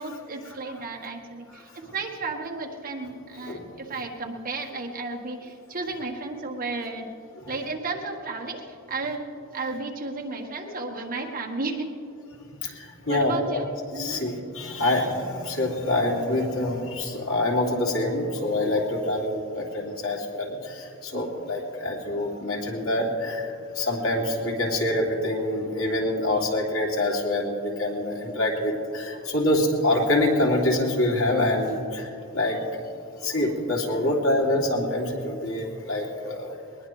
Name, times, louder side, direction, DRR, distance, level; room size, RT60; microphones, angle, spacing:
voice 1, 0.0-7.1 7.5-11.9 13.1-14.2 21.1-21.4 29.2-29.3 31.3-31.6, right 3 dB, 40° right, 2 dB, 1.4 m, -33 dB
voice 2, 12.6-13.4 13.9-32.6 33.2-36.6, left 1 dB, 80° left, -2 dB, 2.9 m, -26 dB
21.0 x 20.0 x 3.2 m, 2.7 s
head